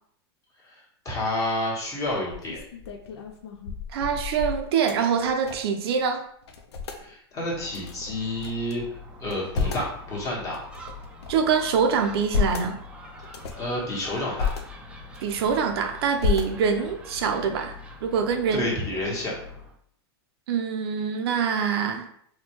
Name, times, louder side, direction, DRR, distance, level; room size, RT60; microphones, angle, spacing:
voice 1, 1.0-2.6 7.0-10.6 13.2-14.5 18.5-19.4, left 1 dB, 25° left, -4 dB, 1.3 m, -30 dB
sound 1, 1.5-1.6 2.0-5.8 6.1-6.2 6.4-7.0 7.7-8.7 9.2-9.9 10.5-11.5 12.0-12.7 13.2-13.7 14.2-14.6 15.1-15.7 16.2-16.9, left 6 dB, 85° left, 0.6 m, -31 dB
voice 2, 3.9-6.2 11.3-12.8 15.2-18.7 20.5-22.1, right 6 dB, 70° right, 5 dB, 0.5 m, -25 dB
Gull seagull, 7.3-19.8, left 2 dB, 10° right, 0.4 m, -44 dB
4.2 x 2.3 x 3.0 m, 0.67 s
hypercardioid pair, 135°, 13 cm